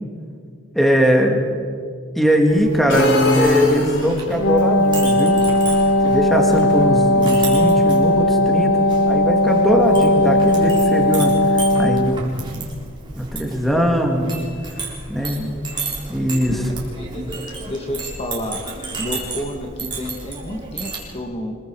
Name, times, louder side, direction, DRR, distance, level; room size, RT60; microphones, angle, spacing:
voice 1, 0.7-1.4 2.2-5.4 6.0-12.6 13.1-14.4 15.1-15.5 16.1-16.7, equal, ahead, 1 dB, 2.2 m, -20 dB
Chink clink, 2.5-21.0, right 3 dB, 25° right, 4.0 m, -33 dB
sound 1, 2.9-4.5, left 1 dB, 60° left, 4.1 m, -20 dB
Wind instrument woodwind instrument, 4.3-12.3, left 1 dB, 90° left, 1.0 m, -17 dB
voice 2, 15.4-15.9 17.0-17.2 17.7-18.6 19.0-21.6, left 1 dB, 30° left, 2 dB, 1.9 m, -30 dB
26.0 x 22.0 x 4.9 m, 2.1 s
head